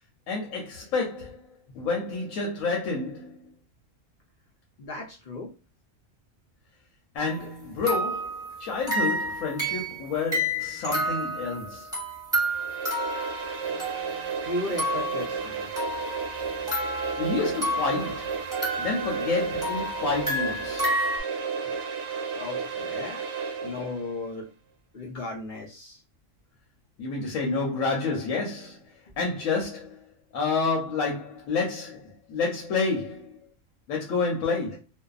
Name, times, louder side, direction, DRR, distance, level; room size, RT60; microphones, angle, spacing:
voice 1, 0.3-1.4 1.7-3.3 7.1-11.9 17.2-18.4 18.8-21.0 27.0-28.8 29.2-30.0 30.3-33.3 33.9-34.8, left 4 dB, 85° left, 1.1 m, -29 dB
voice 2, 4.8-5.5 14.4-15.7 22.3-23.2 23.6-24.5 24.9-26.0, left 2 dB, 55° left, 0.5 m, -35 dB
sound 1, 7.2-7.4 7.9-14.4 14.8-15.3 15.8-18.1 18.5-21.2, equal, 5° right, 1.0 m, -30 dB
sound 2, 12.4-24.1, right 5 dB, 70° right, 1.1 m, -33 dB
2.6 x 2.2 x 2.3 m
omnidirectional pair, 1.4 m